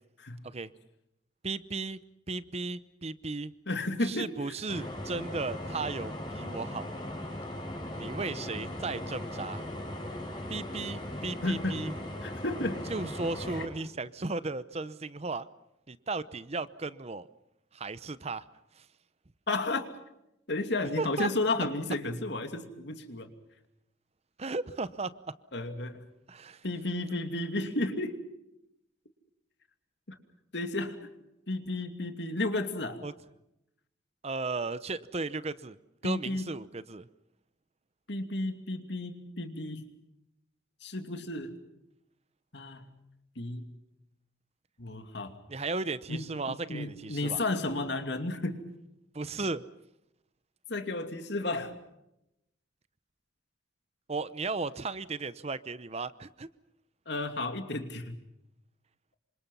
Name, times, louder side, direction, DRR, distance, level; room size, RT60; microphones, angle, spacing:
voice 1, 1.4-2.0 2.3-3.5 4.0-6.9 7.9-9.6 10.5-11.9 12.9-15.5 15.9-17.3 17.7-18.4 18.8-18.9 21.0-21.3 24.4-25.1 26.3-26.6 33.0-33.1 34.2-35.8 36.0-37.1 45.5-47.4 49.1-49.6 54.1-56.5, right 3 dB, 35° right, 15 dB, 0.8 m, -35 dB
voice 2, 3.7-4.5 11.4-11.8 12.2-12.8 13.6-13.7 19.5-19.9 20.5-23.3 25.5-26.0 26.6-28.2 30.1-30.2 30.5-31.0 31.5-33.0 36.0-36.5 38.1-39.9 40.8-41.5 42.5-42.9 43.4-43.8 44.8-45.3 46.1-48.6 50.7-51.8 57.1-58.2, left 2 dB, 60° left, 7 dB, 2.7 m, -33 dB
sound 1, 4.7-13.7, left 1 dB, 25° left, 6.1 m, -38 dB
28.0 x 25.5 x 5.6 m, 0.85 s
head